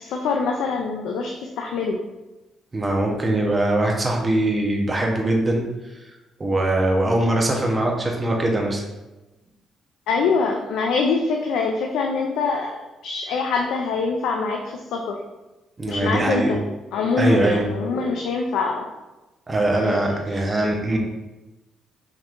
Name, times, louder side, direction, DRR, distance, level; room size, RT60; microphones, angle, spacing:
voice 1, 0.0-2.0 10.1-15.2 15.9-16.6 16.9-18.9 19.8-20.4, left 4 dB, 85° left, 2 dB, 0.4 m, -24 dB
voice 2, 2.7-5.6 5.9-8.8 15.8-16.5 17.1-17.6 19.5-21.0, right 1 dB, 25° right, 0 dB, 0.8 m, -22 dB
5.1 x 2.9 x 2.5 m, 1.1 s
cardioid pair, 90°, 0 cm